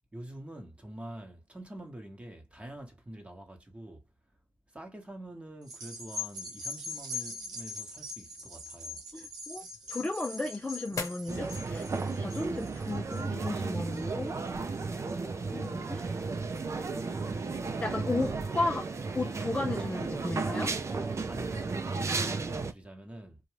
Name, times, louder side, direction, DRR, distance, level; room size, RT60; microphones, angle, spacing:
voice 1, 0.1-4.0 4.7-9.0 20.9-23.4, right 1 dB, 20° right, 1.1 m, -46 dB
sound 1, 5.6-14.3 14.8-14.9, left 2 dB, 85° right, 1.0 m, -42 dB
voice 2, 9.1-9.6 9.9-11.9 12.2-14.3 15.4-16.2 17.8-18.9 19.1-20.7, left 2 dB, 20° left, 0.5 m, -34 dB
sound 2, 9.3-20.2, left 3 dB, 55° left, 0.8 m, -50 dB
sound 3, 11.3-22.7, right 4 dB, 45° right, 0.6 m, -34 dB
2.6 x 2.3 x 3.0 m
cardioid pair, 50°, 7 cm